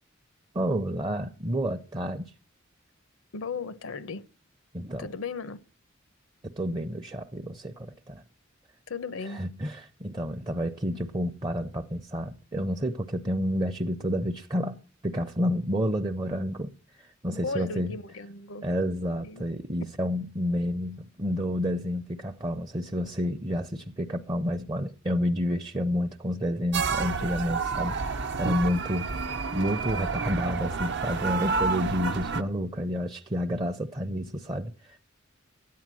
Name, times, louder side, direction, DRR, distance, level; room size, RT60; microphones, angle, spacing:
voice 1, 0.5-2.3 4.7-5.1 6.4-8.2 9.2-14.8 15.0-18.0 18.6-29.1 29.5-35.0, equal, 25° right, 0.6 m, -30 dB
voice 2, 3.3-4.3 5.0-5.6 8.9-9.4 17.3-18.6 19.2-19.5 27.2-27.3, left 4 dB, 85° left, 0.8 m, -36 dB
sound 1, 26.7-32.4, right 4 dB, 60° right, 0.8 m, -29 dB
13.0 x 9.4 x 7.5 m
head